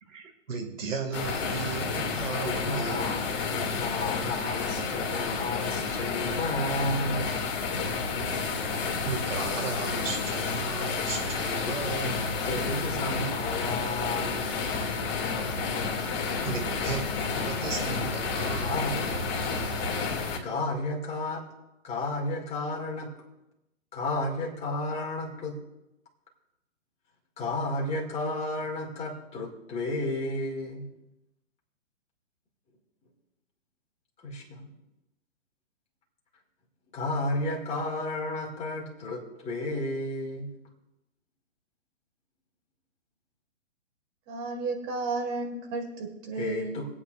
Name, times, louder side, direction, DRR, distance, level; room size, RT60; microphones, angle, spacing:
voice 1, 0.0-3.0 6.3-6.4 9.0-12.2 16.4-19.8, right 4 dB, 80° right, 5 dB, 2.1 m, -36 dB
sound 1, 1.1-20.4, left 4 dB, 35° left, 2.2 m, -30 dB
voice 2, 2.4-7.3 11.7-12.1 12.5-14.6 18.6-19.6 20.4-21.4 21.8-23.1 23.9-25.6 27.4-30.9 34.2-34.7 36.9-40.5 46.4-46.9, left 2 dB, 15° left, -2 dB, 2.2 m, -32 dB
voice 3, 44.3-46.8, right 3 dB, 25° right, 3 dB, 1.9 m, -33 dB
22.0 x 8.6 x 2.5 m, 0.91 s
hypercardioid pair, 145°, 38 cm